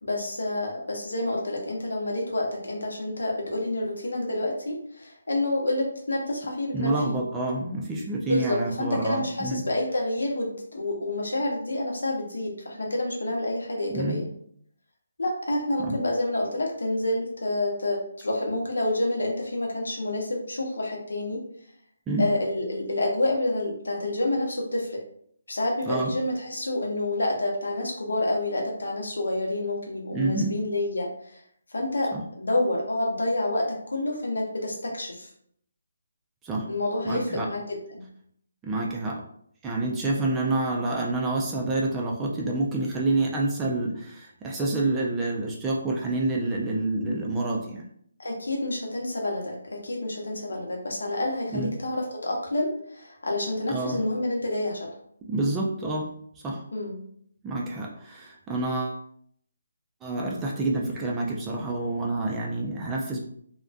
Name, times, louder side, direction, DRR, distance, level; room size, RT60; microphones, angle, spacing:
voice 1, 0.0-6.9 8.3-14.3 15.2-21.4 22.2-25.0 25.5-31.4 31.7-35.3 36.7-38.0 40.4-40.5 48.2-54.9 56.7-57.0, left 1 dB, 80° left, 0 dB, 0.8 m, -28 dB
voice 2, 6.7-9.6 13.9-14.2 15.8-15.9 22.1-22.3 25.9-26.1 30.1-30.5 32.1-32.2 36.4-36.7 37.0-37.5 38.6-39.2 39.6-47.8 51.5-51.7 53.7-54.0 55.3-56.1 56.4-56.6 57.4-59.0 60.0-63.2, right 2 dB, 10° right, -3 dB, 0.4 m, -28 dB
2.4 x 2.2 x 2.3 m, 0.66 s
figure-of-eight pair, 155°, 0 cm